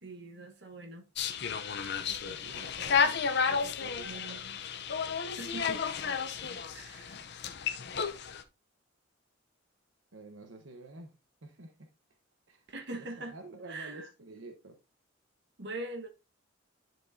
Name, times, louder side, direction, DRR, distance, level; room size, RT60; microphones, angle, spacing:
voice 1, 0.0-1.0 4.0-4.6 5.4-5.8 6.7-7.2 12.7-13.3 13.7-14.1 15.6-16.1, right 2 dB, 65° right, 1.3 m, -42 dB
sound 1, 1.2-8.4, left 6 dB, 60° left, 0.7 m, -32 dB
voice 2, 2.0-4.4 6.4-6.5 10.1-11.2 11.4-11.9 12.5-12.6 12.9-14.8, right 2 dB, 80° right, 1.1 m, -49 dB
10.5 x 4.5 x 2.7 m
head